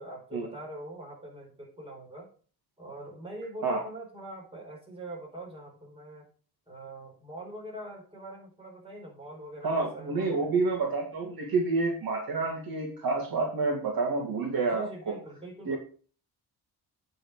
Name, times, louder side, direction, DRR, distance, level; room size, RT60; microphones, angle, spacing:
voice 1, 0.0-2.3 2.8-6.3 6.7-10.5 14.7-15.8, right 1 dB, 15° right, -2 dB, 4.4 m, -43 dB
voice 2, 9.6-15.2 15.7-15.8, right 3 dB, 60° right, 1 dB, 2.4 m, -28 dB
8.5 x 6.2 x 4.9 m, 0.40 s
cardioid pair, 125°, 40 cm